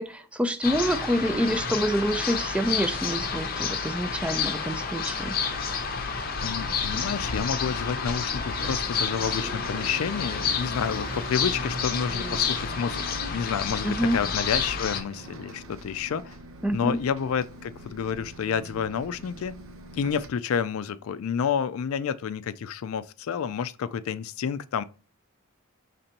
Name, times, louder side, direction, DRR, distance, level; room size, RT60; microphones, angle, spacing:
voice 1, 0.0-5.4 13.8-14.2 16.6-17.0, equal, 5° right, 0.3 m, -27 dB
sound 1, 0.6-15.0, left 6 dB, 45° left, 0.6 m, -30 dB
voice 2, 6.4-16.4 16.7-19.5 19.9-24.8, left 7 dB, 75° left, 0.3 m, -29 dB
Bus, 6.5-20.3, right 1 dB, 75° right, 0.8 m, -42 dB
5.2 x 3.3 x 2.8 m
head